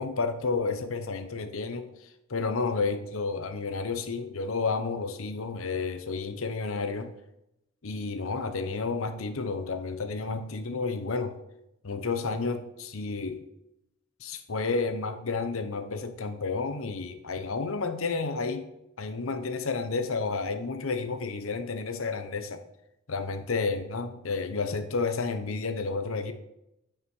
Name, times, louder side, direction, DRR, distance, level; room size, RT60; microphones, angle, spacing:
voice 1, 0.0-7.1 7.8-11.4 11.8-13.4 14.2-18.7 19.0-22.6 23.1-26.3, left 4 dB, 75° left, 9 dB, 0.9 m, -31 dB
9.6 x 5.8 x 4.8 m, 0.87 s
head